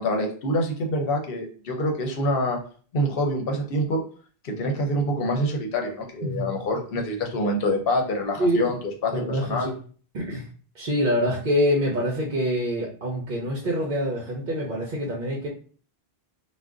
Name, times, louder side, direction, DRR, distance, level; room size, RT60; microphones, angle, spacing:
voice 1, 0.0-2.6 2.9-4.0 4.4-8.8 9.0-9.7, left 1 dB, 65° left, 3 dB, 0.8 m, -26 dB
voice 2, 9.1-9.8 10.1-10.5 10.7-15.5, equal, 55° right, -2 dB, 0.7 m, -25 dB
2.5 x 2.1 x 3.5 m, 0.43 s
omnidirectional pair, 1.1 m